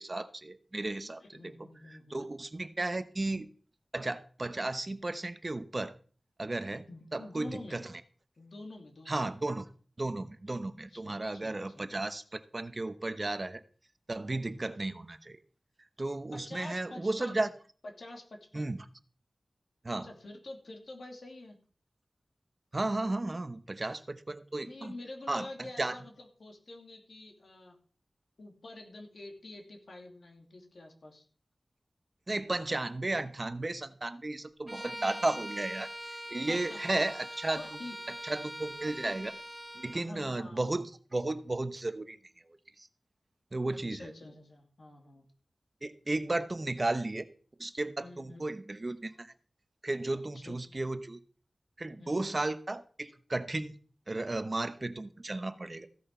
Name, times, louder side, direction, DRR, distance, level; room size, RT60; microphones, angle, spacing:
voice 1, 0.0-1.7 2.1-3.5 3.9-5.9 6.4-7.9 9.1-9.7 10.0-13.6 14.1-15.4 16.0-17.5 18.5-18.8 19.8-20.1 22.7-25.0 25.3-26.0 32.3-35.9 36.3-37.6 38.2-39.3 39.7-42.2 42.8-42.9 43.5-44.1 45.8-47.3 47.6-49.3 49.8-51.2 51.8-53.8 54.1-55.9, right 2 dB, 40° right, 11 dB, 0.9 m, -34 dB
voice 2, 1.2-2.2 6.9-7.8 8.4-9.3 10.9-11.9 14.5-14.7 16.3-17.4 17.8-18.7 20.0-21.6 24.5-27.8 28.4-31.3 36.5-36.8 37.6-38.0 39.9-40.7 43.7-45.2 48.0-48.5 50.3-50.6 52.0-52.4, left 2 dB, 80° left, 2 dB, 2.7 m, -47 dB
Bowed string instrument, 34.7-40.1, equal, 15° right, 1.4 m, -43 dB
15.5 x 6.4 x 5.5 m, 0.43 s
wide cardioid pair, 75°, 0 cm